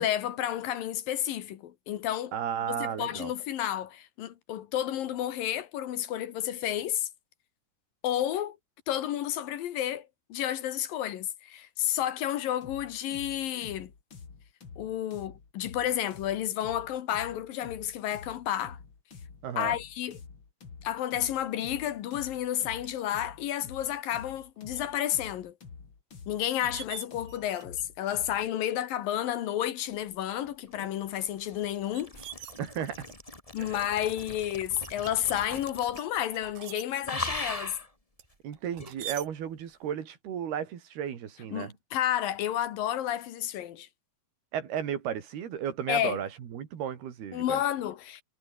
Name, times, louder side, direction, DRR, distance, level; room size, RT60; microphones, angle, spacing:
voice 1, 0.0-2.3 2.7-7.1 8.0-8.6 8.9-13.9 14.8-18.8 19.6-20.2 20.8-25.5 26.3-32.1 33.5-37.8 41.5-43.9 45.9-46.2 47.3-48.2, left 11 dB, 70° left, 2.9 m, -31 dB
voice 2, 2.3-3.3 19.4-19.8 32.6-33.1 33.6-33.8 38.4-41.7 44.5-47.6, right 9 dB, 80° right, 4.7 m, -34 dB
sound 1, 12.6-28.5, left 5 dB, 35° left, 3.1 m, -48 dB
sound 2, 22.8-23.0 23.9-24.0 24.4-24.8 25.2-25.3 26.1-26.2 26.5-27.8 28.1-28.4 29.1-29.2 30.0-30.4 31.1-33.1 33.7-34.1 34.8-35.5 36.0-36.8 38.2-39.3, right 11 dB, 65° right, 3.2 m, -45 dB
sound 3, 30.4-36.2 36.4-36.7 37.0-37.9 38.8-38.9, left 1 dB, 10° left, 3.6 m, -40 dB
omnidirectional pair, 4.4 m